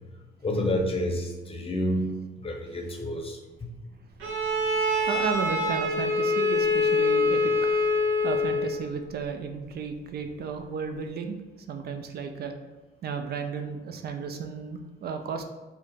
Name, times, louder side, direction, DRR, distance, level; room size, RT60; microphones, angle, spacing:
voice 1, 0.4-2.0 2.4-3.7, left 1 dB, 30° left, 3 dB, 0.7 m, -29 dB
Bowed string instrument, 4.2-8.8, left 2 dB, 80° right, 0.9 m, -25 dB
voice 2, 4.8-11.4 11.7-12.5 13.0-15.4, right 5 dB, 50° right, 6 dB, 0.4 m, -34 dB
4.5 x 2.0 x 3.4 m, 1.2 s
supercardioid pair, 75°, 20 cm